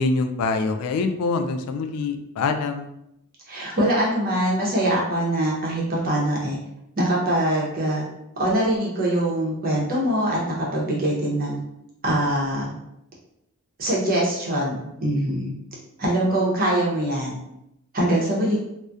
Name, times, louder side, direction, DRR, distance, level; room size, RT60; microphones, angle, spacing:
voice 1, 0.0-2.9, left 3 dB, 85° left, 9 dB, 0.3 m, -24 dB
voice 2, 3.5-6.6 7.0-8.1 8.4-11.6 12.0-12.8 13.8-15.5 16.0-17.4 17.9-18.6, right 1 dB, 45° right, -4 dB, 0.7 m, -23 dB
2.6 x 2.1 x 2.3 m, 0.82 s
head